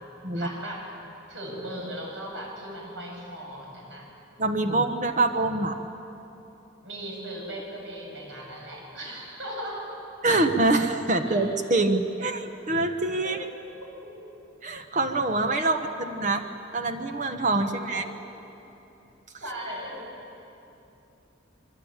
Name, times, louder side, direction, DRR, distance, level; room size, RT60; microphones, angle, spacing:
voice 1, 0.3-0.9 1.3-4.1 6.8-10.0 11.3-11.4 13.2-13.3 14.0-14.1 15.7-15.8 17.9-18.0 19.4-20.0, right 1 dB, 70° right, -1 dB, 7.7 m, -37 dB
voice 2, 4.4-5.8 10.2-13.4 14.6-16.4 16.7-18.0, right 2 dB, 40° right, 6 dB, 1.2 m, -25 dB
26.5 x 23.0 x 9.0 m, 2.9 s
head